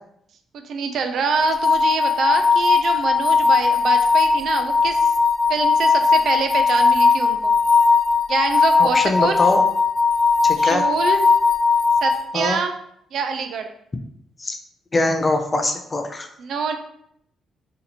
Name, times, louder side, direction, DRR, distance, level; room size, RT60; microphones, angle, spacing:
voice 1, 0.6-5.1 5.5-7.5 8.3-9.4 10.6-11.2 12.0-12.7 13.1-13.7 16.4-16.7, right 5 dB, 65° right, 6 dB, 0.4 m, -25 dB
sound 1, 1.3-12.2, left 4 dB, 75° left, 0.9 m, -18 dB
voice 2, 8.8-9.6 10.4-10.8 12.3-12.6 14.4-14.6 14.9-16.3, left 2 dB, 25° left, 6 dB, 0.5 m, -22 dB
2.8 x 2.7 x 4.1 m, 0.72 s
cardioid pair, 90°, 0 cm